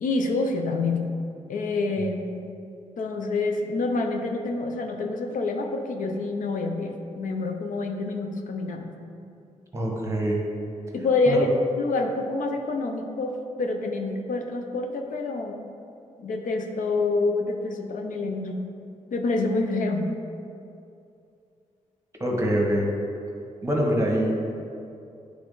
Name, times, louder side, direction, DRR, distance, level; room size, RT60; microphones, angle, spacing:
voice 1, 0.0-1.1 1.5-2.5 3.0-8.9 10.9-15.6 16.2-18.7 19.1-20.1, left 3 dB, 80° left, 4 dB, 0.6 m, -27 dB
voice 2, 9.7-10.4 11.3-11.4 22.2-22.9 23.6-24.3, right 1 dB, 20° right, -1 dB, 1.2 m, -24 dB
8.9 x 3.4 x 3.8 m, 2.6 s
cardioid pair, 95°, 13 cm